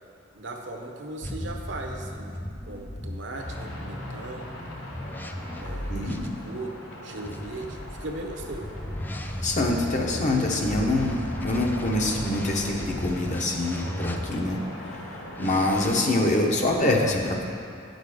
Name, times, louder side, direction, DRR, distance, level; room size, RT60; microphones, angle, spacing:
voice 1, 0.3-2.4 2.7-4.5 5.6-6.7 7.0-8.7 15.8-16.0, right 2 dB, 70° right, 3 dB, 0.9 m, -38 dB
sound 1, 1.2-6.3 7.2-14.6 15.3-16.0, left 1 dB, 10° left, 0.4 m, -36 dB
sound 2, 3.3-15.7, left 1 dB, 85° left, 1.2 m, -41 dB
voice 2, 5.9-6.3 9.4-14.6 15.4-17.5, left 2 dB, 40° left, 0 dB, 0.9 m, -25 dB
9.0 x 6.6 x 5.0 m, 2.4 s
head